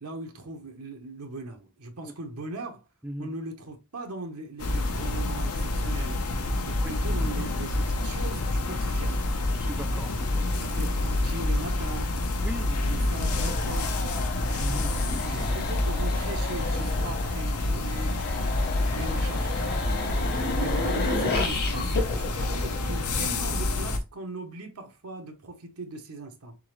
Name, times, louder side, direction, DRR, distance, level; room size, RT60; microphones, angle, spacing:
voice 1, 0.0-2.9 3.2-6.2 6.6-9.2 10.4-12.2 12.8-14.1 15.2-18.5 18.9-19.7 20.6-26.6, right 2 dB, 90° right, 1.0 m, -39 dB
sound 1, 4.6-24.0, left 2 dB, 85° left, 0.8 m, -28 dB
voice 2, 9.5-10.5 12.4-12.9 14.6-15.6 20.6-20.7, equal, 5° right, 0.4 m, -39 dB
sound 2, 13.2-23.4, left 3 dB, 45° left, 1.1 m, -33 dB
3.9 x 3.7 x 3.1 m
head